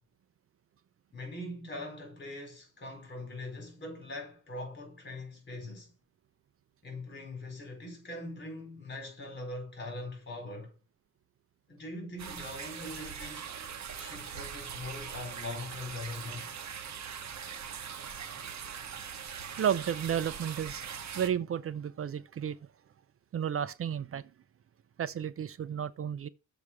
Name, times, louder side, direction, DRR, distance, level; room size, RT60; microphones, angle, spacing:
voice 1, 1.1-5.9 6.8-10.8 11.7-13.5 13.9-16.5, left 2 dB, 35° left, 4.3 m, -42 dB
sound 1, 12.2-21.3, right 7 dB, 60° right, 1.3 m, -41 dB
voice 2, 19.5-22.6 23.3-24.3 25.0-26.3, right 9 dB, 45° right, 0.5 m, -32 dB
7.1 x 4.9 x 6.3 m
wide cardioid pair, 155°, 31 cm